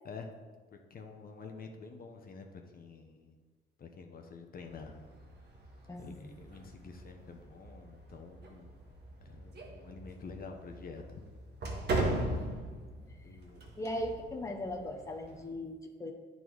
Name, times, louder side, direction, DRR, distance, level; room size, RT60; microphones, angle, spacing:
voice 1, 0.7-3.3 3.8-4.9 6.0-8.7 9.2-11.2 13.2-13.7, left 4 dB, 50° left, 4 dB, 0.9 m, -48 dB
sound 1, 4.6-15.5, right 1 dB, 55° right, 1.4 m, -40 dB
voice 2, 5.9-6.3 13.8-16.1, left 1 dB, 15° left, 2 dB, 0.8 m, -38 dB
9.0 x 4.0 x 4.7 m, 1.4 s
cardioid pair, 90°, 20 cm